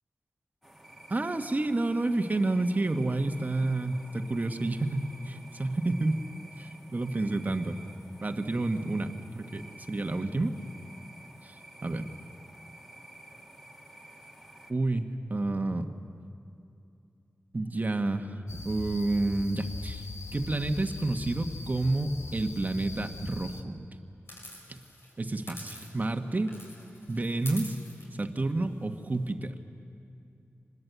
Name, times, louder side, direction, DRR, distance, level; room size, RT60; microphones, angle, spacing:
sound 1, 0.6-14.7, right 1 dB, ahead, 2.3 m, -51 dB
voice 1, 1.1-6.2 6.6-7.8 8.2-10.6 11.4-12.1 14.7-15.9 17.5-18.4 18.6-20.1 20.3-23.9 24.7-24.8 25.2-26.6 27.1-27.8 28.1-29.6, right 2 dB, 35° right, 6 dB, 1.4 m, -30 dB
sound 2, 18.5-23.6, left 3 dB, 90° left, 1.5 m, -41 dB
sound 3, 24.3-26.2 26.5-29.3, left 1 dB, 60° left, 6.5 m, -46 dB
26.5 x 20.5 x 8.3 m, 2.6 s
wide cardioid pair, 90°, 5 cm